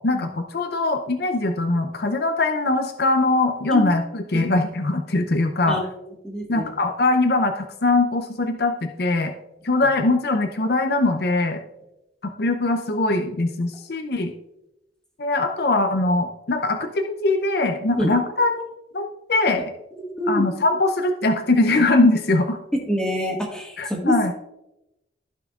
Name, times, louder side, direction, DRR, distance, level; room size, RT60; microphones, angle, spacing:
voice 1, 0.0-5.8 6.5-9.3 9.6-11.6 12.2-14.3 15.2-19.6 20.3-22.6 23.8-24.3, left 2 dB, 60° left, 6 dB, 0.6 m, -21 dB
voice 2, 6.2-6.7 18.0-18.1 20.2-20.5 22.9-24.1, equal, 5° left, -1 dB, 1.7 m, -26 dB
15.0 x 5.7 x 2.4 m, 0.92 s
head